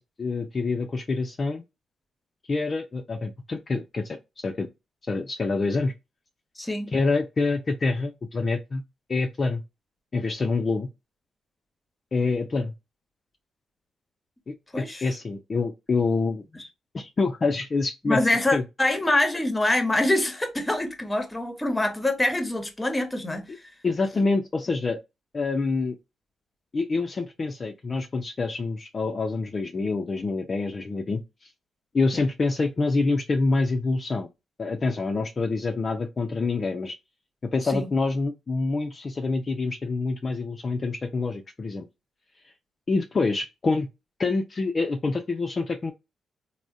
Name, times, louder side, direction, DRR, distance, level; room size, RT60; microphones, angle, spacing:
voice 1, 0.0-1.6 2.5-4.2 4.4-4.7 5.1-5.9 6.9-8.8 9.1-9.6 10.1-10.9 12.1-12.7 14.5-16.4 16.9-18.2 18.5-18.6 23.8-25.0 25.3-26.0 26.7-31.5 31.9-34.3 34.6-37.0 37.5-41.9 42.9-43.9 44.2-45.9, left 3 dB, 40° left, 0.4 m, -26 dB
voice 2, 6.6-6.9 14.7-15.1 16.6-16.7 18.0-23.6 32.1-32.2 37.6-37.9, left 1 dB, 15° left, 0.8 m, -25 dB
3.4 x 2.1 x 2.5 m
cardioid pair, 80°, 0 cm